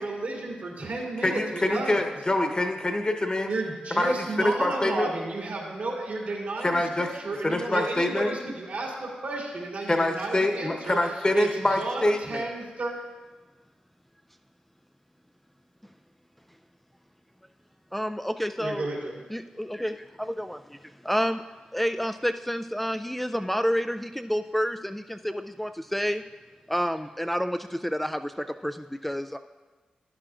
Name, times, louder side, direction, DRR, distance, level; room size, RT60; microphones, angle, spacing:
voice 1, 0.0-2.0 3.5-12.9 18.6-19.2, right 2 dB, 80° right, -3 dB, 2.6 m, -32 dB
voice 2, 1.2-3.5 4.0-5.1 6.6-7.1 7.4-8.3 9.9-12.4, left 1 dB, 30° left, 4 dB, 1.1 m, -25 dB
voice 3, 17.9-18.9 19.3-21.4 21.7-26.2 26.7-28.3 28.6-29.4, equal, 5° left, 7 dB, 0.3 m, -29 dB
12.5 x 10.0 x 2.5 m, 1.3 s
cardioid pair, 55°, 3 cm